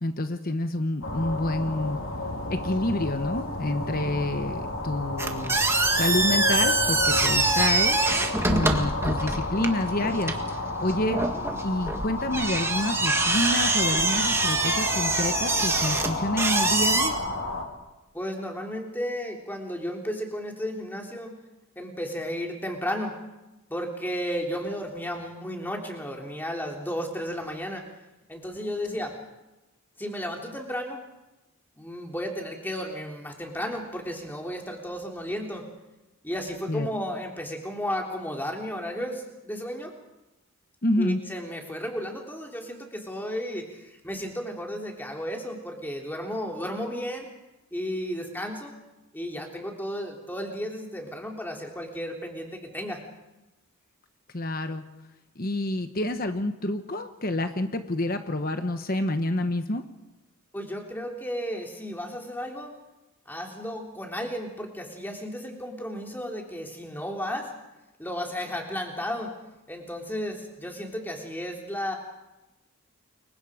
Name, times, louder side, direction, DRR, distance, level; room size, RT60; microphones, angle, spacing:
voice 1, 0.0-2.0 2.5-5.6 5.9-11.2 11.6-17.2 36.7-36.9 40.8-41.2 54.3-54.8 55.4-59.8, left 1 dB, 40° left, 8 dB, 1.1 m, -28 dB
sound 1, 1.0-17.6, left 2 dB, 65° left, 4.0 m, -32 dB
sound 2, 5.2-17.1, right 3 dB, 10° right, 1.6 m, -25 dB
voice 2, 18.1-21.3 21.7-23.1 23.7-27.8 28.3-29.2 30.0-31.0 31.7-35.7 36.2-39.9 41.0-47.3 47.7-48.7 49.1-53.0 60.5-62.7 63.2-67.5 68.0-69.3 69.7-71.9, equal, 10° left, 1 dB, 3.2 m, -33 dB
29.0 x 23.5 x 5.1 m, 1.0 s
head